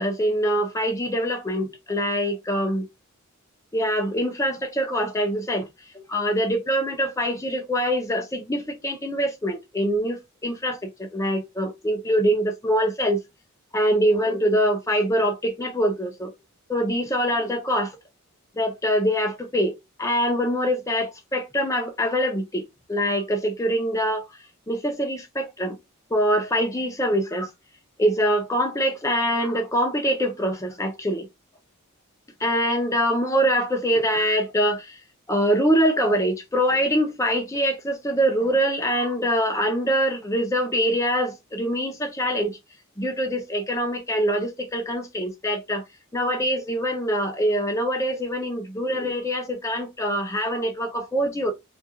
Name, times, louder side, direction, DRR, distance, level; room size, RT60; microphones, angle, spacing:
voice 1, 0.0-2.9 3.7-5.7 5.9-13.2 13.7-16.3 16.7-17.9 18.6-24.3 24.7-25.8 26.1-27.5 28.0-31.3 32.4-34.9 35.3-42.6 43.0-45.8 46.1-51.5, equal, 15° left, 0.6 m, -24 dB
2.4 x 2.3 x 2.7 m
head